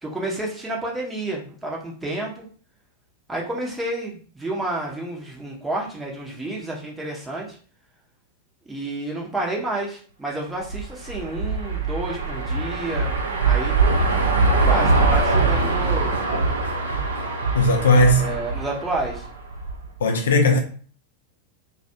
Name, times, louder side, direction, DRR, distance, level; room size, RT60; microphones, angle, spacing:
voice 1, 0.0-2.5 3.3-7.6 8.6-13.2 13.4-14.1 14.5-16.2 18.2-19.3, right 2 dB, 10° right, 0.7 m, -30 dB
sound 1, 10.6-19.9, right 3 dB, 70° right, 0.5 m, -22 dB
voice 2, 17.5-18.3 20.0-20.6, left 1 dB, 65° left, 0.4 m, -17 dB
2.4 x 2.3 x 2.7 m
figure-of-eight pair, 90°, 0 cm